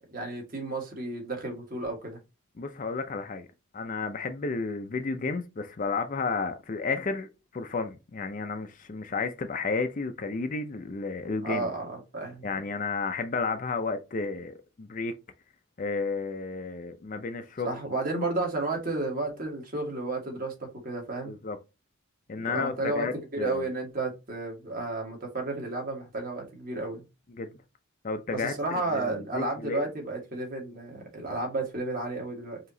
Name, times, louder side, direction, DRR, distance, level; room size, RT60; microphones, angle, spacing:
voice 1, 0.1-2.2 11.4-12.5 17.6-21.3 22.5-27.0 28.3-32.6, right 2 dB, 40° right, 1.5 m, -32 dB
voice 2, 2.6-3.5 3.7-11.7 12.4-15.1 15.8-17.8 21.2-21.6 22.3-23.6 27.3-27.5 28.0-29.9, left 4 dB, 40° left, 0.4 m, -32 dB
4.8 x 2.9 x 2.7 m
head